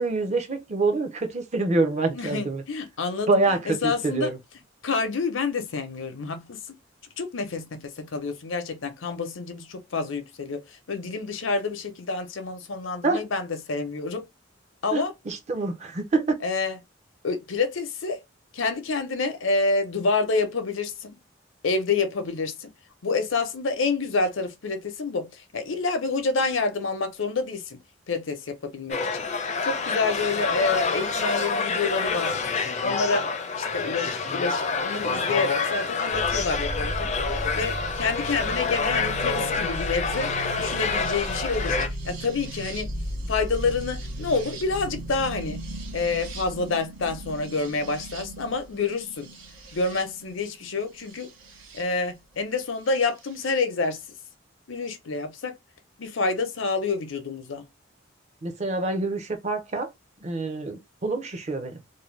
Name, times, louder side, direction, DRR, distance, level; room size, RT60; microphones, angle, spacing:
voice 1, 0.0-2.6 3.3-4.4 13.0-13.2 14.9-16.4 58.4-59.9 60.2-61.8, right 3 dB, 35° right, 0.5 m, -26 dB
voice 2, 2.1-3.3 3.7-4.3 4.8-6.8 7.2-14.3 14.8-15.1 16.4-16.8 17.2-18.2 18.5-21.2 21.6-22.7 23.0-27.8 28.1-29.3 29.6-32.4 32.8-33.3 33.6-37.1 37.5-40.3 40.6-41.8 42.0-42.9 43.3-45.6 45.9-49.3 49.7-51.3 51.7-54.0 54.7-55.5 56.0-57.6, left 4 dB, 85° left, 0.7 m, -28 dB
sound 1, 28.9-41.9, left 4 dB, 35° left, 0.4 m, -27 dB
sound 2, 36.1-51.8 53.0-53.6, right 1 dB, 90° right, 0.8 m, -36 dB
2.6 x 2.1 x 3.1 m
head